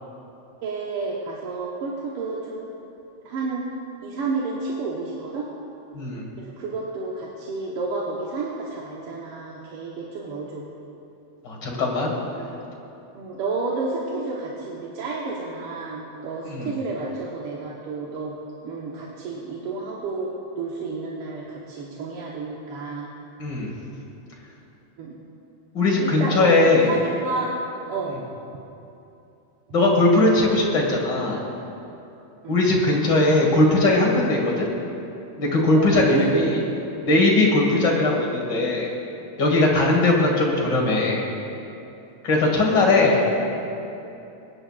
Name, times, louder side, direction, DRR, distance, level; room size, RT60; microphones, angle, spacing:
voice 1, 0.6-2.7 3.2-3.7 4.0-5.5 6.4-10.7 12.4-12.6 13.1-18.3 18.6-20.3 20.6-23.1 25.0-25.2 26.0-27.6 27.9-28.2 32.4-32.5 35.7-36.3 37.7-38.0 39.9-40.1 42.3-42.6 42.9-43.4, right 3 dB, 60° right, -4 dB, 1.7 m, -31 dB
voice 2, 5.9-6.3 11.4-12.1 16.5-16.7 23.4-23.7 25.7-26.9 29.7-31.4 32.5-34.7 35.4-36.6 37.0-38.9 39.4-41.3 42.2-43.2, left 2 dB, 45° left, -1 dB, 1.9 m, -19 dB
23.0 x 9.9 x 2.4 m, 2.9 s
omnidirectional pair, 3.4 m